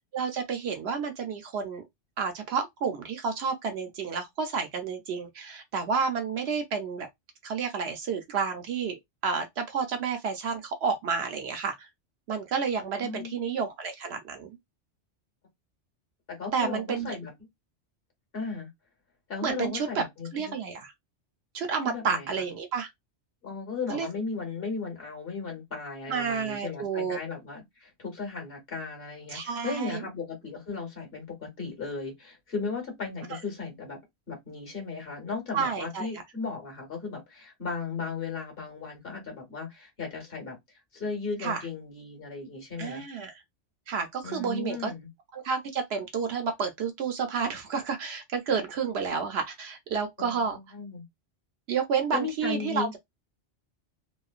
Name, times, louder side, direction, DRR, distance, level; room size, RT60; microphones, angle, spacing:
voice 1, 0.1-1.9 2.2-7.1 7.4-11.9 12.3-14.6 16.5-17.2 19.4-20.0 20.3-20.9 21.5-22.9 23.9-24.1 26.1-27.2 29.3-30.0 33.3-33.4 35.5-36.1 41.4-41.6 42.8-43.3 43.9-44.9 45.3-50.6 51.7-52.9, right 6 dB, 65° right, 0.8 m, -30 dB
voice 2, 13.0-13.4 16.3-17.3 18.3-18.7 19.3-20.5 21.8-22.4 23.4-34.0 34.3-40.6 40.9-43.1 44.2-45.1 50.2-51.0 52.1-53.0, left 4 dB, 50° left, 1.5 m, -36 dB
3.0 x 2.1 x 2.4 m
omnidirectional pair, 1.2 m